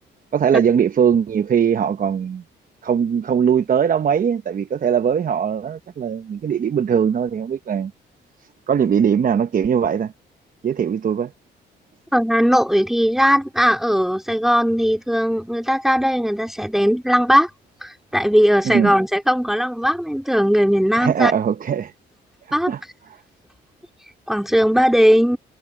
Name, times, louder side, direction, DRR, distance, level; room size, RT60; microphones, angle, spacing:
voice 1, 0.3-2.4 2.8-7.9 8.7-10.1 10.6-11.3 18.6-18.9 21.0-21.9 22.7-22.8, right 7 dB, 45° right, 0.9 m, -20 dB
voice 2, 12.1-17.5 17.8-21.3 22.5-22.7 24.3-25.4, equal, ahead, 2.6 m, -18 dB
cardioid pair, 90°, 20 cm